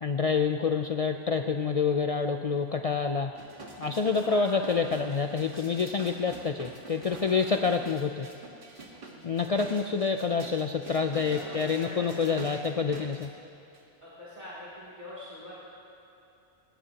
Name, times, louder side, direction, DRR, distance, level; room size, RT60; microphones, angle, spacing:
voice 1, 0.0-3.3 3.8-8.3 9.2-13.3, left 5 dB, 45° left, 6 dB, 0.5 m, -27 dB
sound 1, 3.3-13.3 13.7-13.8, right 3 dB, 55° right, 1.8 m, -46 dB
voice 2, 4.1-4.8 7.0-7.4 8.9-9.4 11.3-12.7 14.0-15.7, equal, 35° right, -9 dB, 3.0 m, -44 dB
20.0 x 18.5 x 2.9 m, 2.9 s
omnidirectional pair, 1.1 m